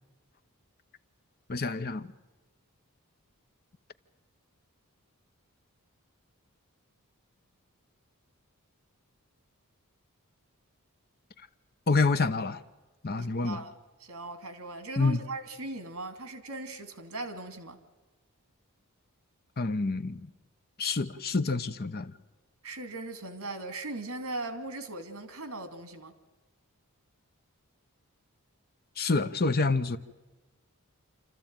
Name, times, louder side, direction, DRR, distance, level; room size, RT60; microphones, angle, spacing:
voice 1, 1.5-2.1 11.9-12.6 13.0-13.6 15.0-15.2 19.6-20.2 20.8-22.1 29.0-30.0, left 3 dB, 45° left, 0.8 m, -27 dB
voice 2, 13.1-13.7 14.0-17.8 22.6-26.1, right 2 dB, 65° right, 2.6 m, -39 dB
28.0 x 14.0 x 8.9 m
head